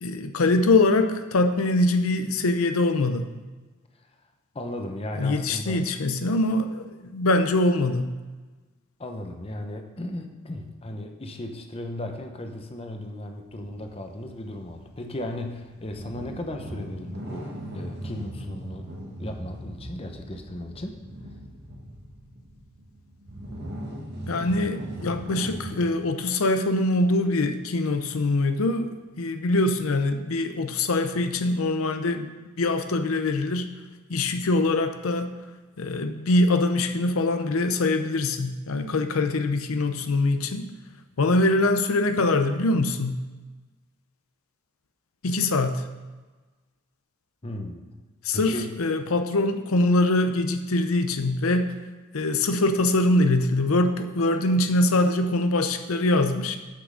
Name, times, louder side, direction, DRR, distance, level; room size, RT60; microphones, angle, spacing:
voice 1, 0.0-3.3 5.2-8.1 24.3-33.7 34.1-35.3 35.8-40.7 41.2-43.2 45.2-45.8 48.2-51.7 52.1-56.6, left 2 dB, 80° left, 8 dB, 0.7 m, -23 dB
voice 2, 4.5-5.8 9.0-18.9 19.2-21.0 47.4-47.8 48.3-48.8, left 1 dB, 25° left, 5 dB, 0.8 m, -36 dB
sound 1, 13.5-25.8, right 1 dB, 55° right, 1.7 m, -39 dB
8.4 x 6.2 x 6.2 m, 1.3 s
head